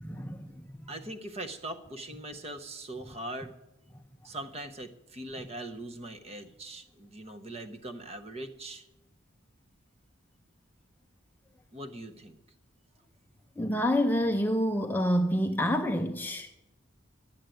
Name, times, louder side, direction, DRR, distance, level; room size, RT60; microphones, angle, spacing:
voice 1, 0.0-0.6 13.6-16.5, equal, 10° left, 0.5 m, -28 dB
voice 2, 0.9-3.5 4.2-8.9 11.7-12.4, right 1 dB, 30° right, 0.9 m, -41 dB
11.5 x 7.4 x 9.1 m
head